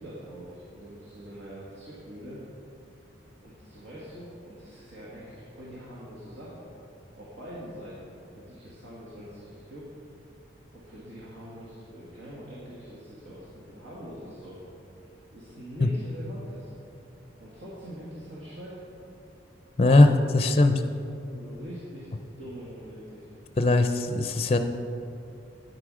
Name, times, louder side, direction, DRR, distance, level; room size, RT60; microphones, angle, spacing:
voice 1, 0.0-2.4 3.4-6.7 7.2-9.9 10.7-14.6 15.3-16.7 17.4-18.8 21.3-22.1 22.4-23.3, equal, 80° right, -7 dB, 1.8 m, -43 dB
voice 2, 19.8-20.8 23.6-24.6, left 2 dB, 30° left, 7 dB, 0.4 m, -20 dB
9.7 x 9.1 x 4.9 m, 2.7 s
head